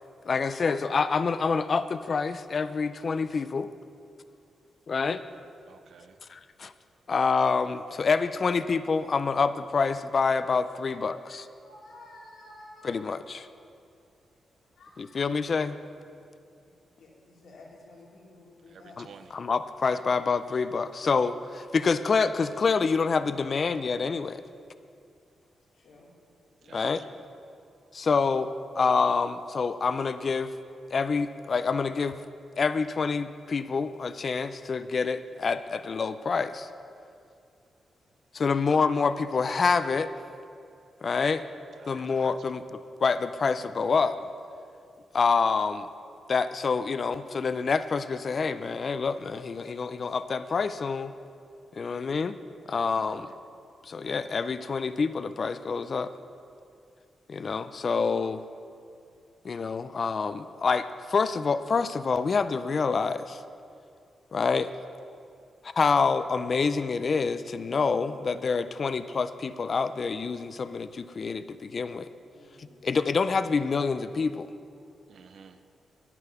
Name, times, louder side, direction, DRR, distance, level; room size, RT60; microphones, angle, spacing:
voice 1, 0.2-3.7 4.9-5.2 6.3-6.7 7.1-11.5 12.8-13.5 15.0-15.8 19.0-24.4 26.7-27.0 27.9-30.5 30.9-32.2 32.6-36.7 38.3-40.1 41.0-41.4 41.9-44.2 45.1-45.9 46.3-51.1 51.7-52.4 52.7-53.3 53.8-56.1 57.3-58.4 59.4-63.4 64.3-64.7 65.6-72.1 72.6-74.5, left 5 dB, 50° left, 12 dB, 0.4 m, -27 dB
voice 2, 5.7-6.2 18.7-19.3 19.9-20.3 26.6-27.0 41.8-42.4 53.0-53.3 75.1-75.6, right 6 dB, 70° right, 9 dB, 0.6 m, -51 dB
voice 3, 10.9-12.9 14.8-15.5 17.0-19.0 25.7-26.1 26.6-27.0 38.4-38.7 41.7-41.9 72.3-72.8, left 2 dB, 80° left, -3 dB, 2.4 m, -53 dB
10.0 x 9.7 x 5.7 m, 2.4 s
cardioid pair, 85°, 0 cm